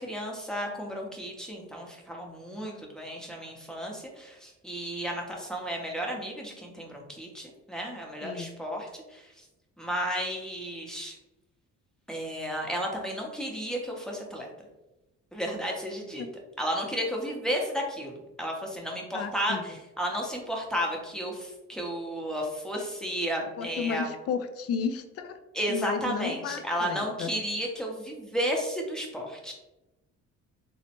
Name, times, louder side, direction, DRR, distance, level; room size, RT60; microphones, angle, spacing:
voice 1, 0.0-9.3 9.8-11.1 12.1-14.5 15.3-16.2 16.6-24.1 25.5-29.5, equal, ahead, -1 dB, 0.7 m, -33 dB
voice 2, 19.1-19.6 23.6-25.4 25.7-27.3, left 6 dB, 55° left, 8 dB, 0.4 m, -33 dB
3.2 x 2.1 x 2.8 m, 1.0 s
cardioid pair, 90°, 30 cm